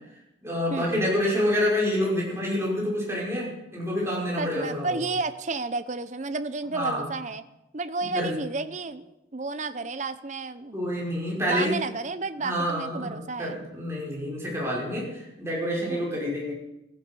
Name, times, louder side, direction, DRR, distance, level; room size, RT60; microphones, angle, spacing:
voice 1, 0.4-5.0 6.7-7.1 8.1-8.4 10.7-11.7 12.4-16.5, equal, 15° right, -5 dB, 5.7 m, -28 dB
voice 2, 4.4-7.4 7.7-10.8 11.5-13.6 15.9-16.2, right 3 dB, 40° right, 11 dB, 0.7 m, -32 dB
15.5 x 15.0 x 5.5 m, 0.89 s
head